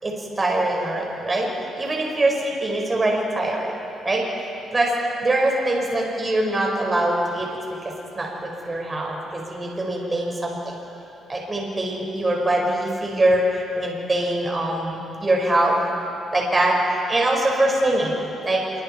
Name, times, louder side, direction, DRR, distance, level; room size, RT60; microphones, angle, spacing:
voice 1, 0.0-1.5 1.8-3.7 4.0-4.2 4.7-4.9 5.2-10.7 11.3-15.8 16.3-18.1 18.4-18.6, right 1 dB, 25° right, -1 dB, 4.9 m, -23 dB
27.5 x 23.5 x 4.4 m, 2.9 s
cardioid pair, 90°, 0 cm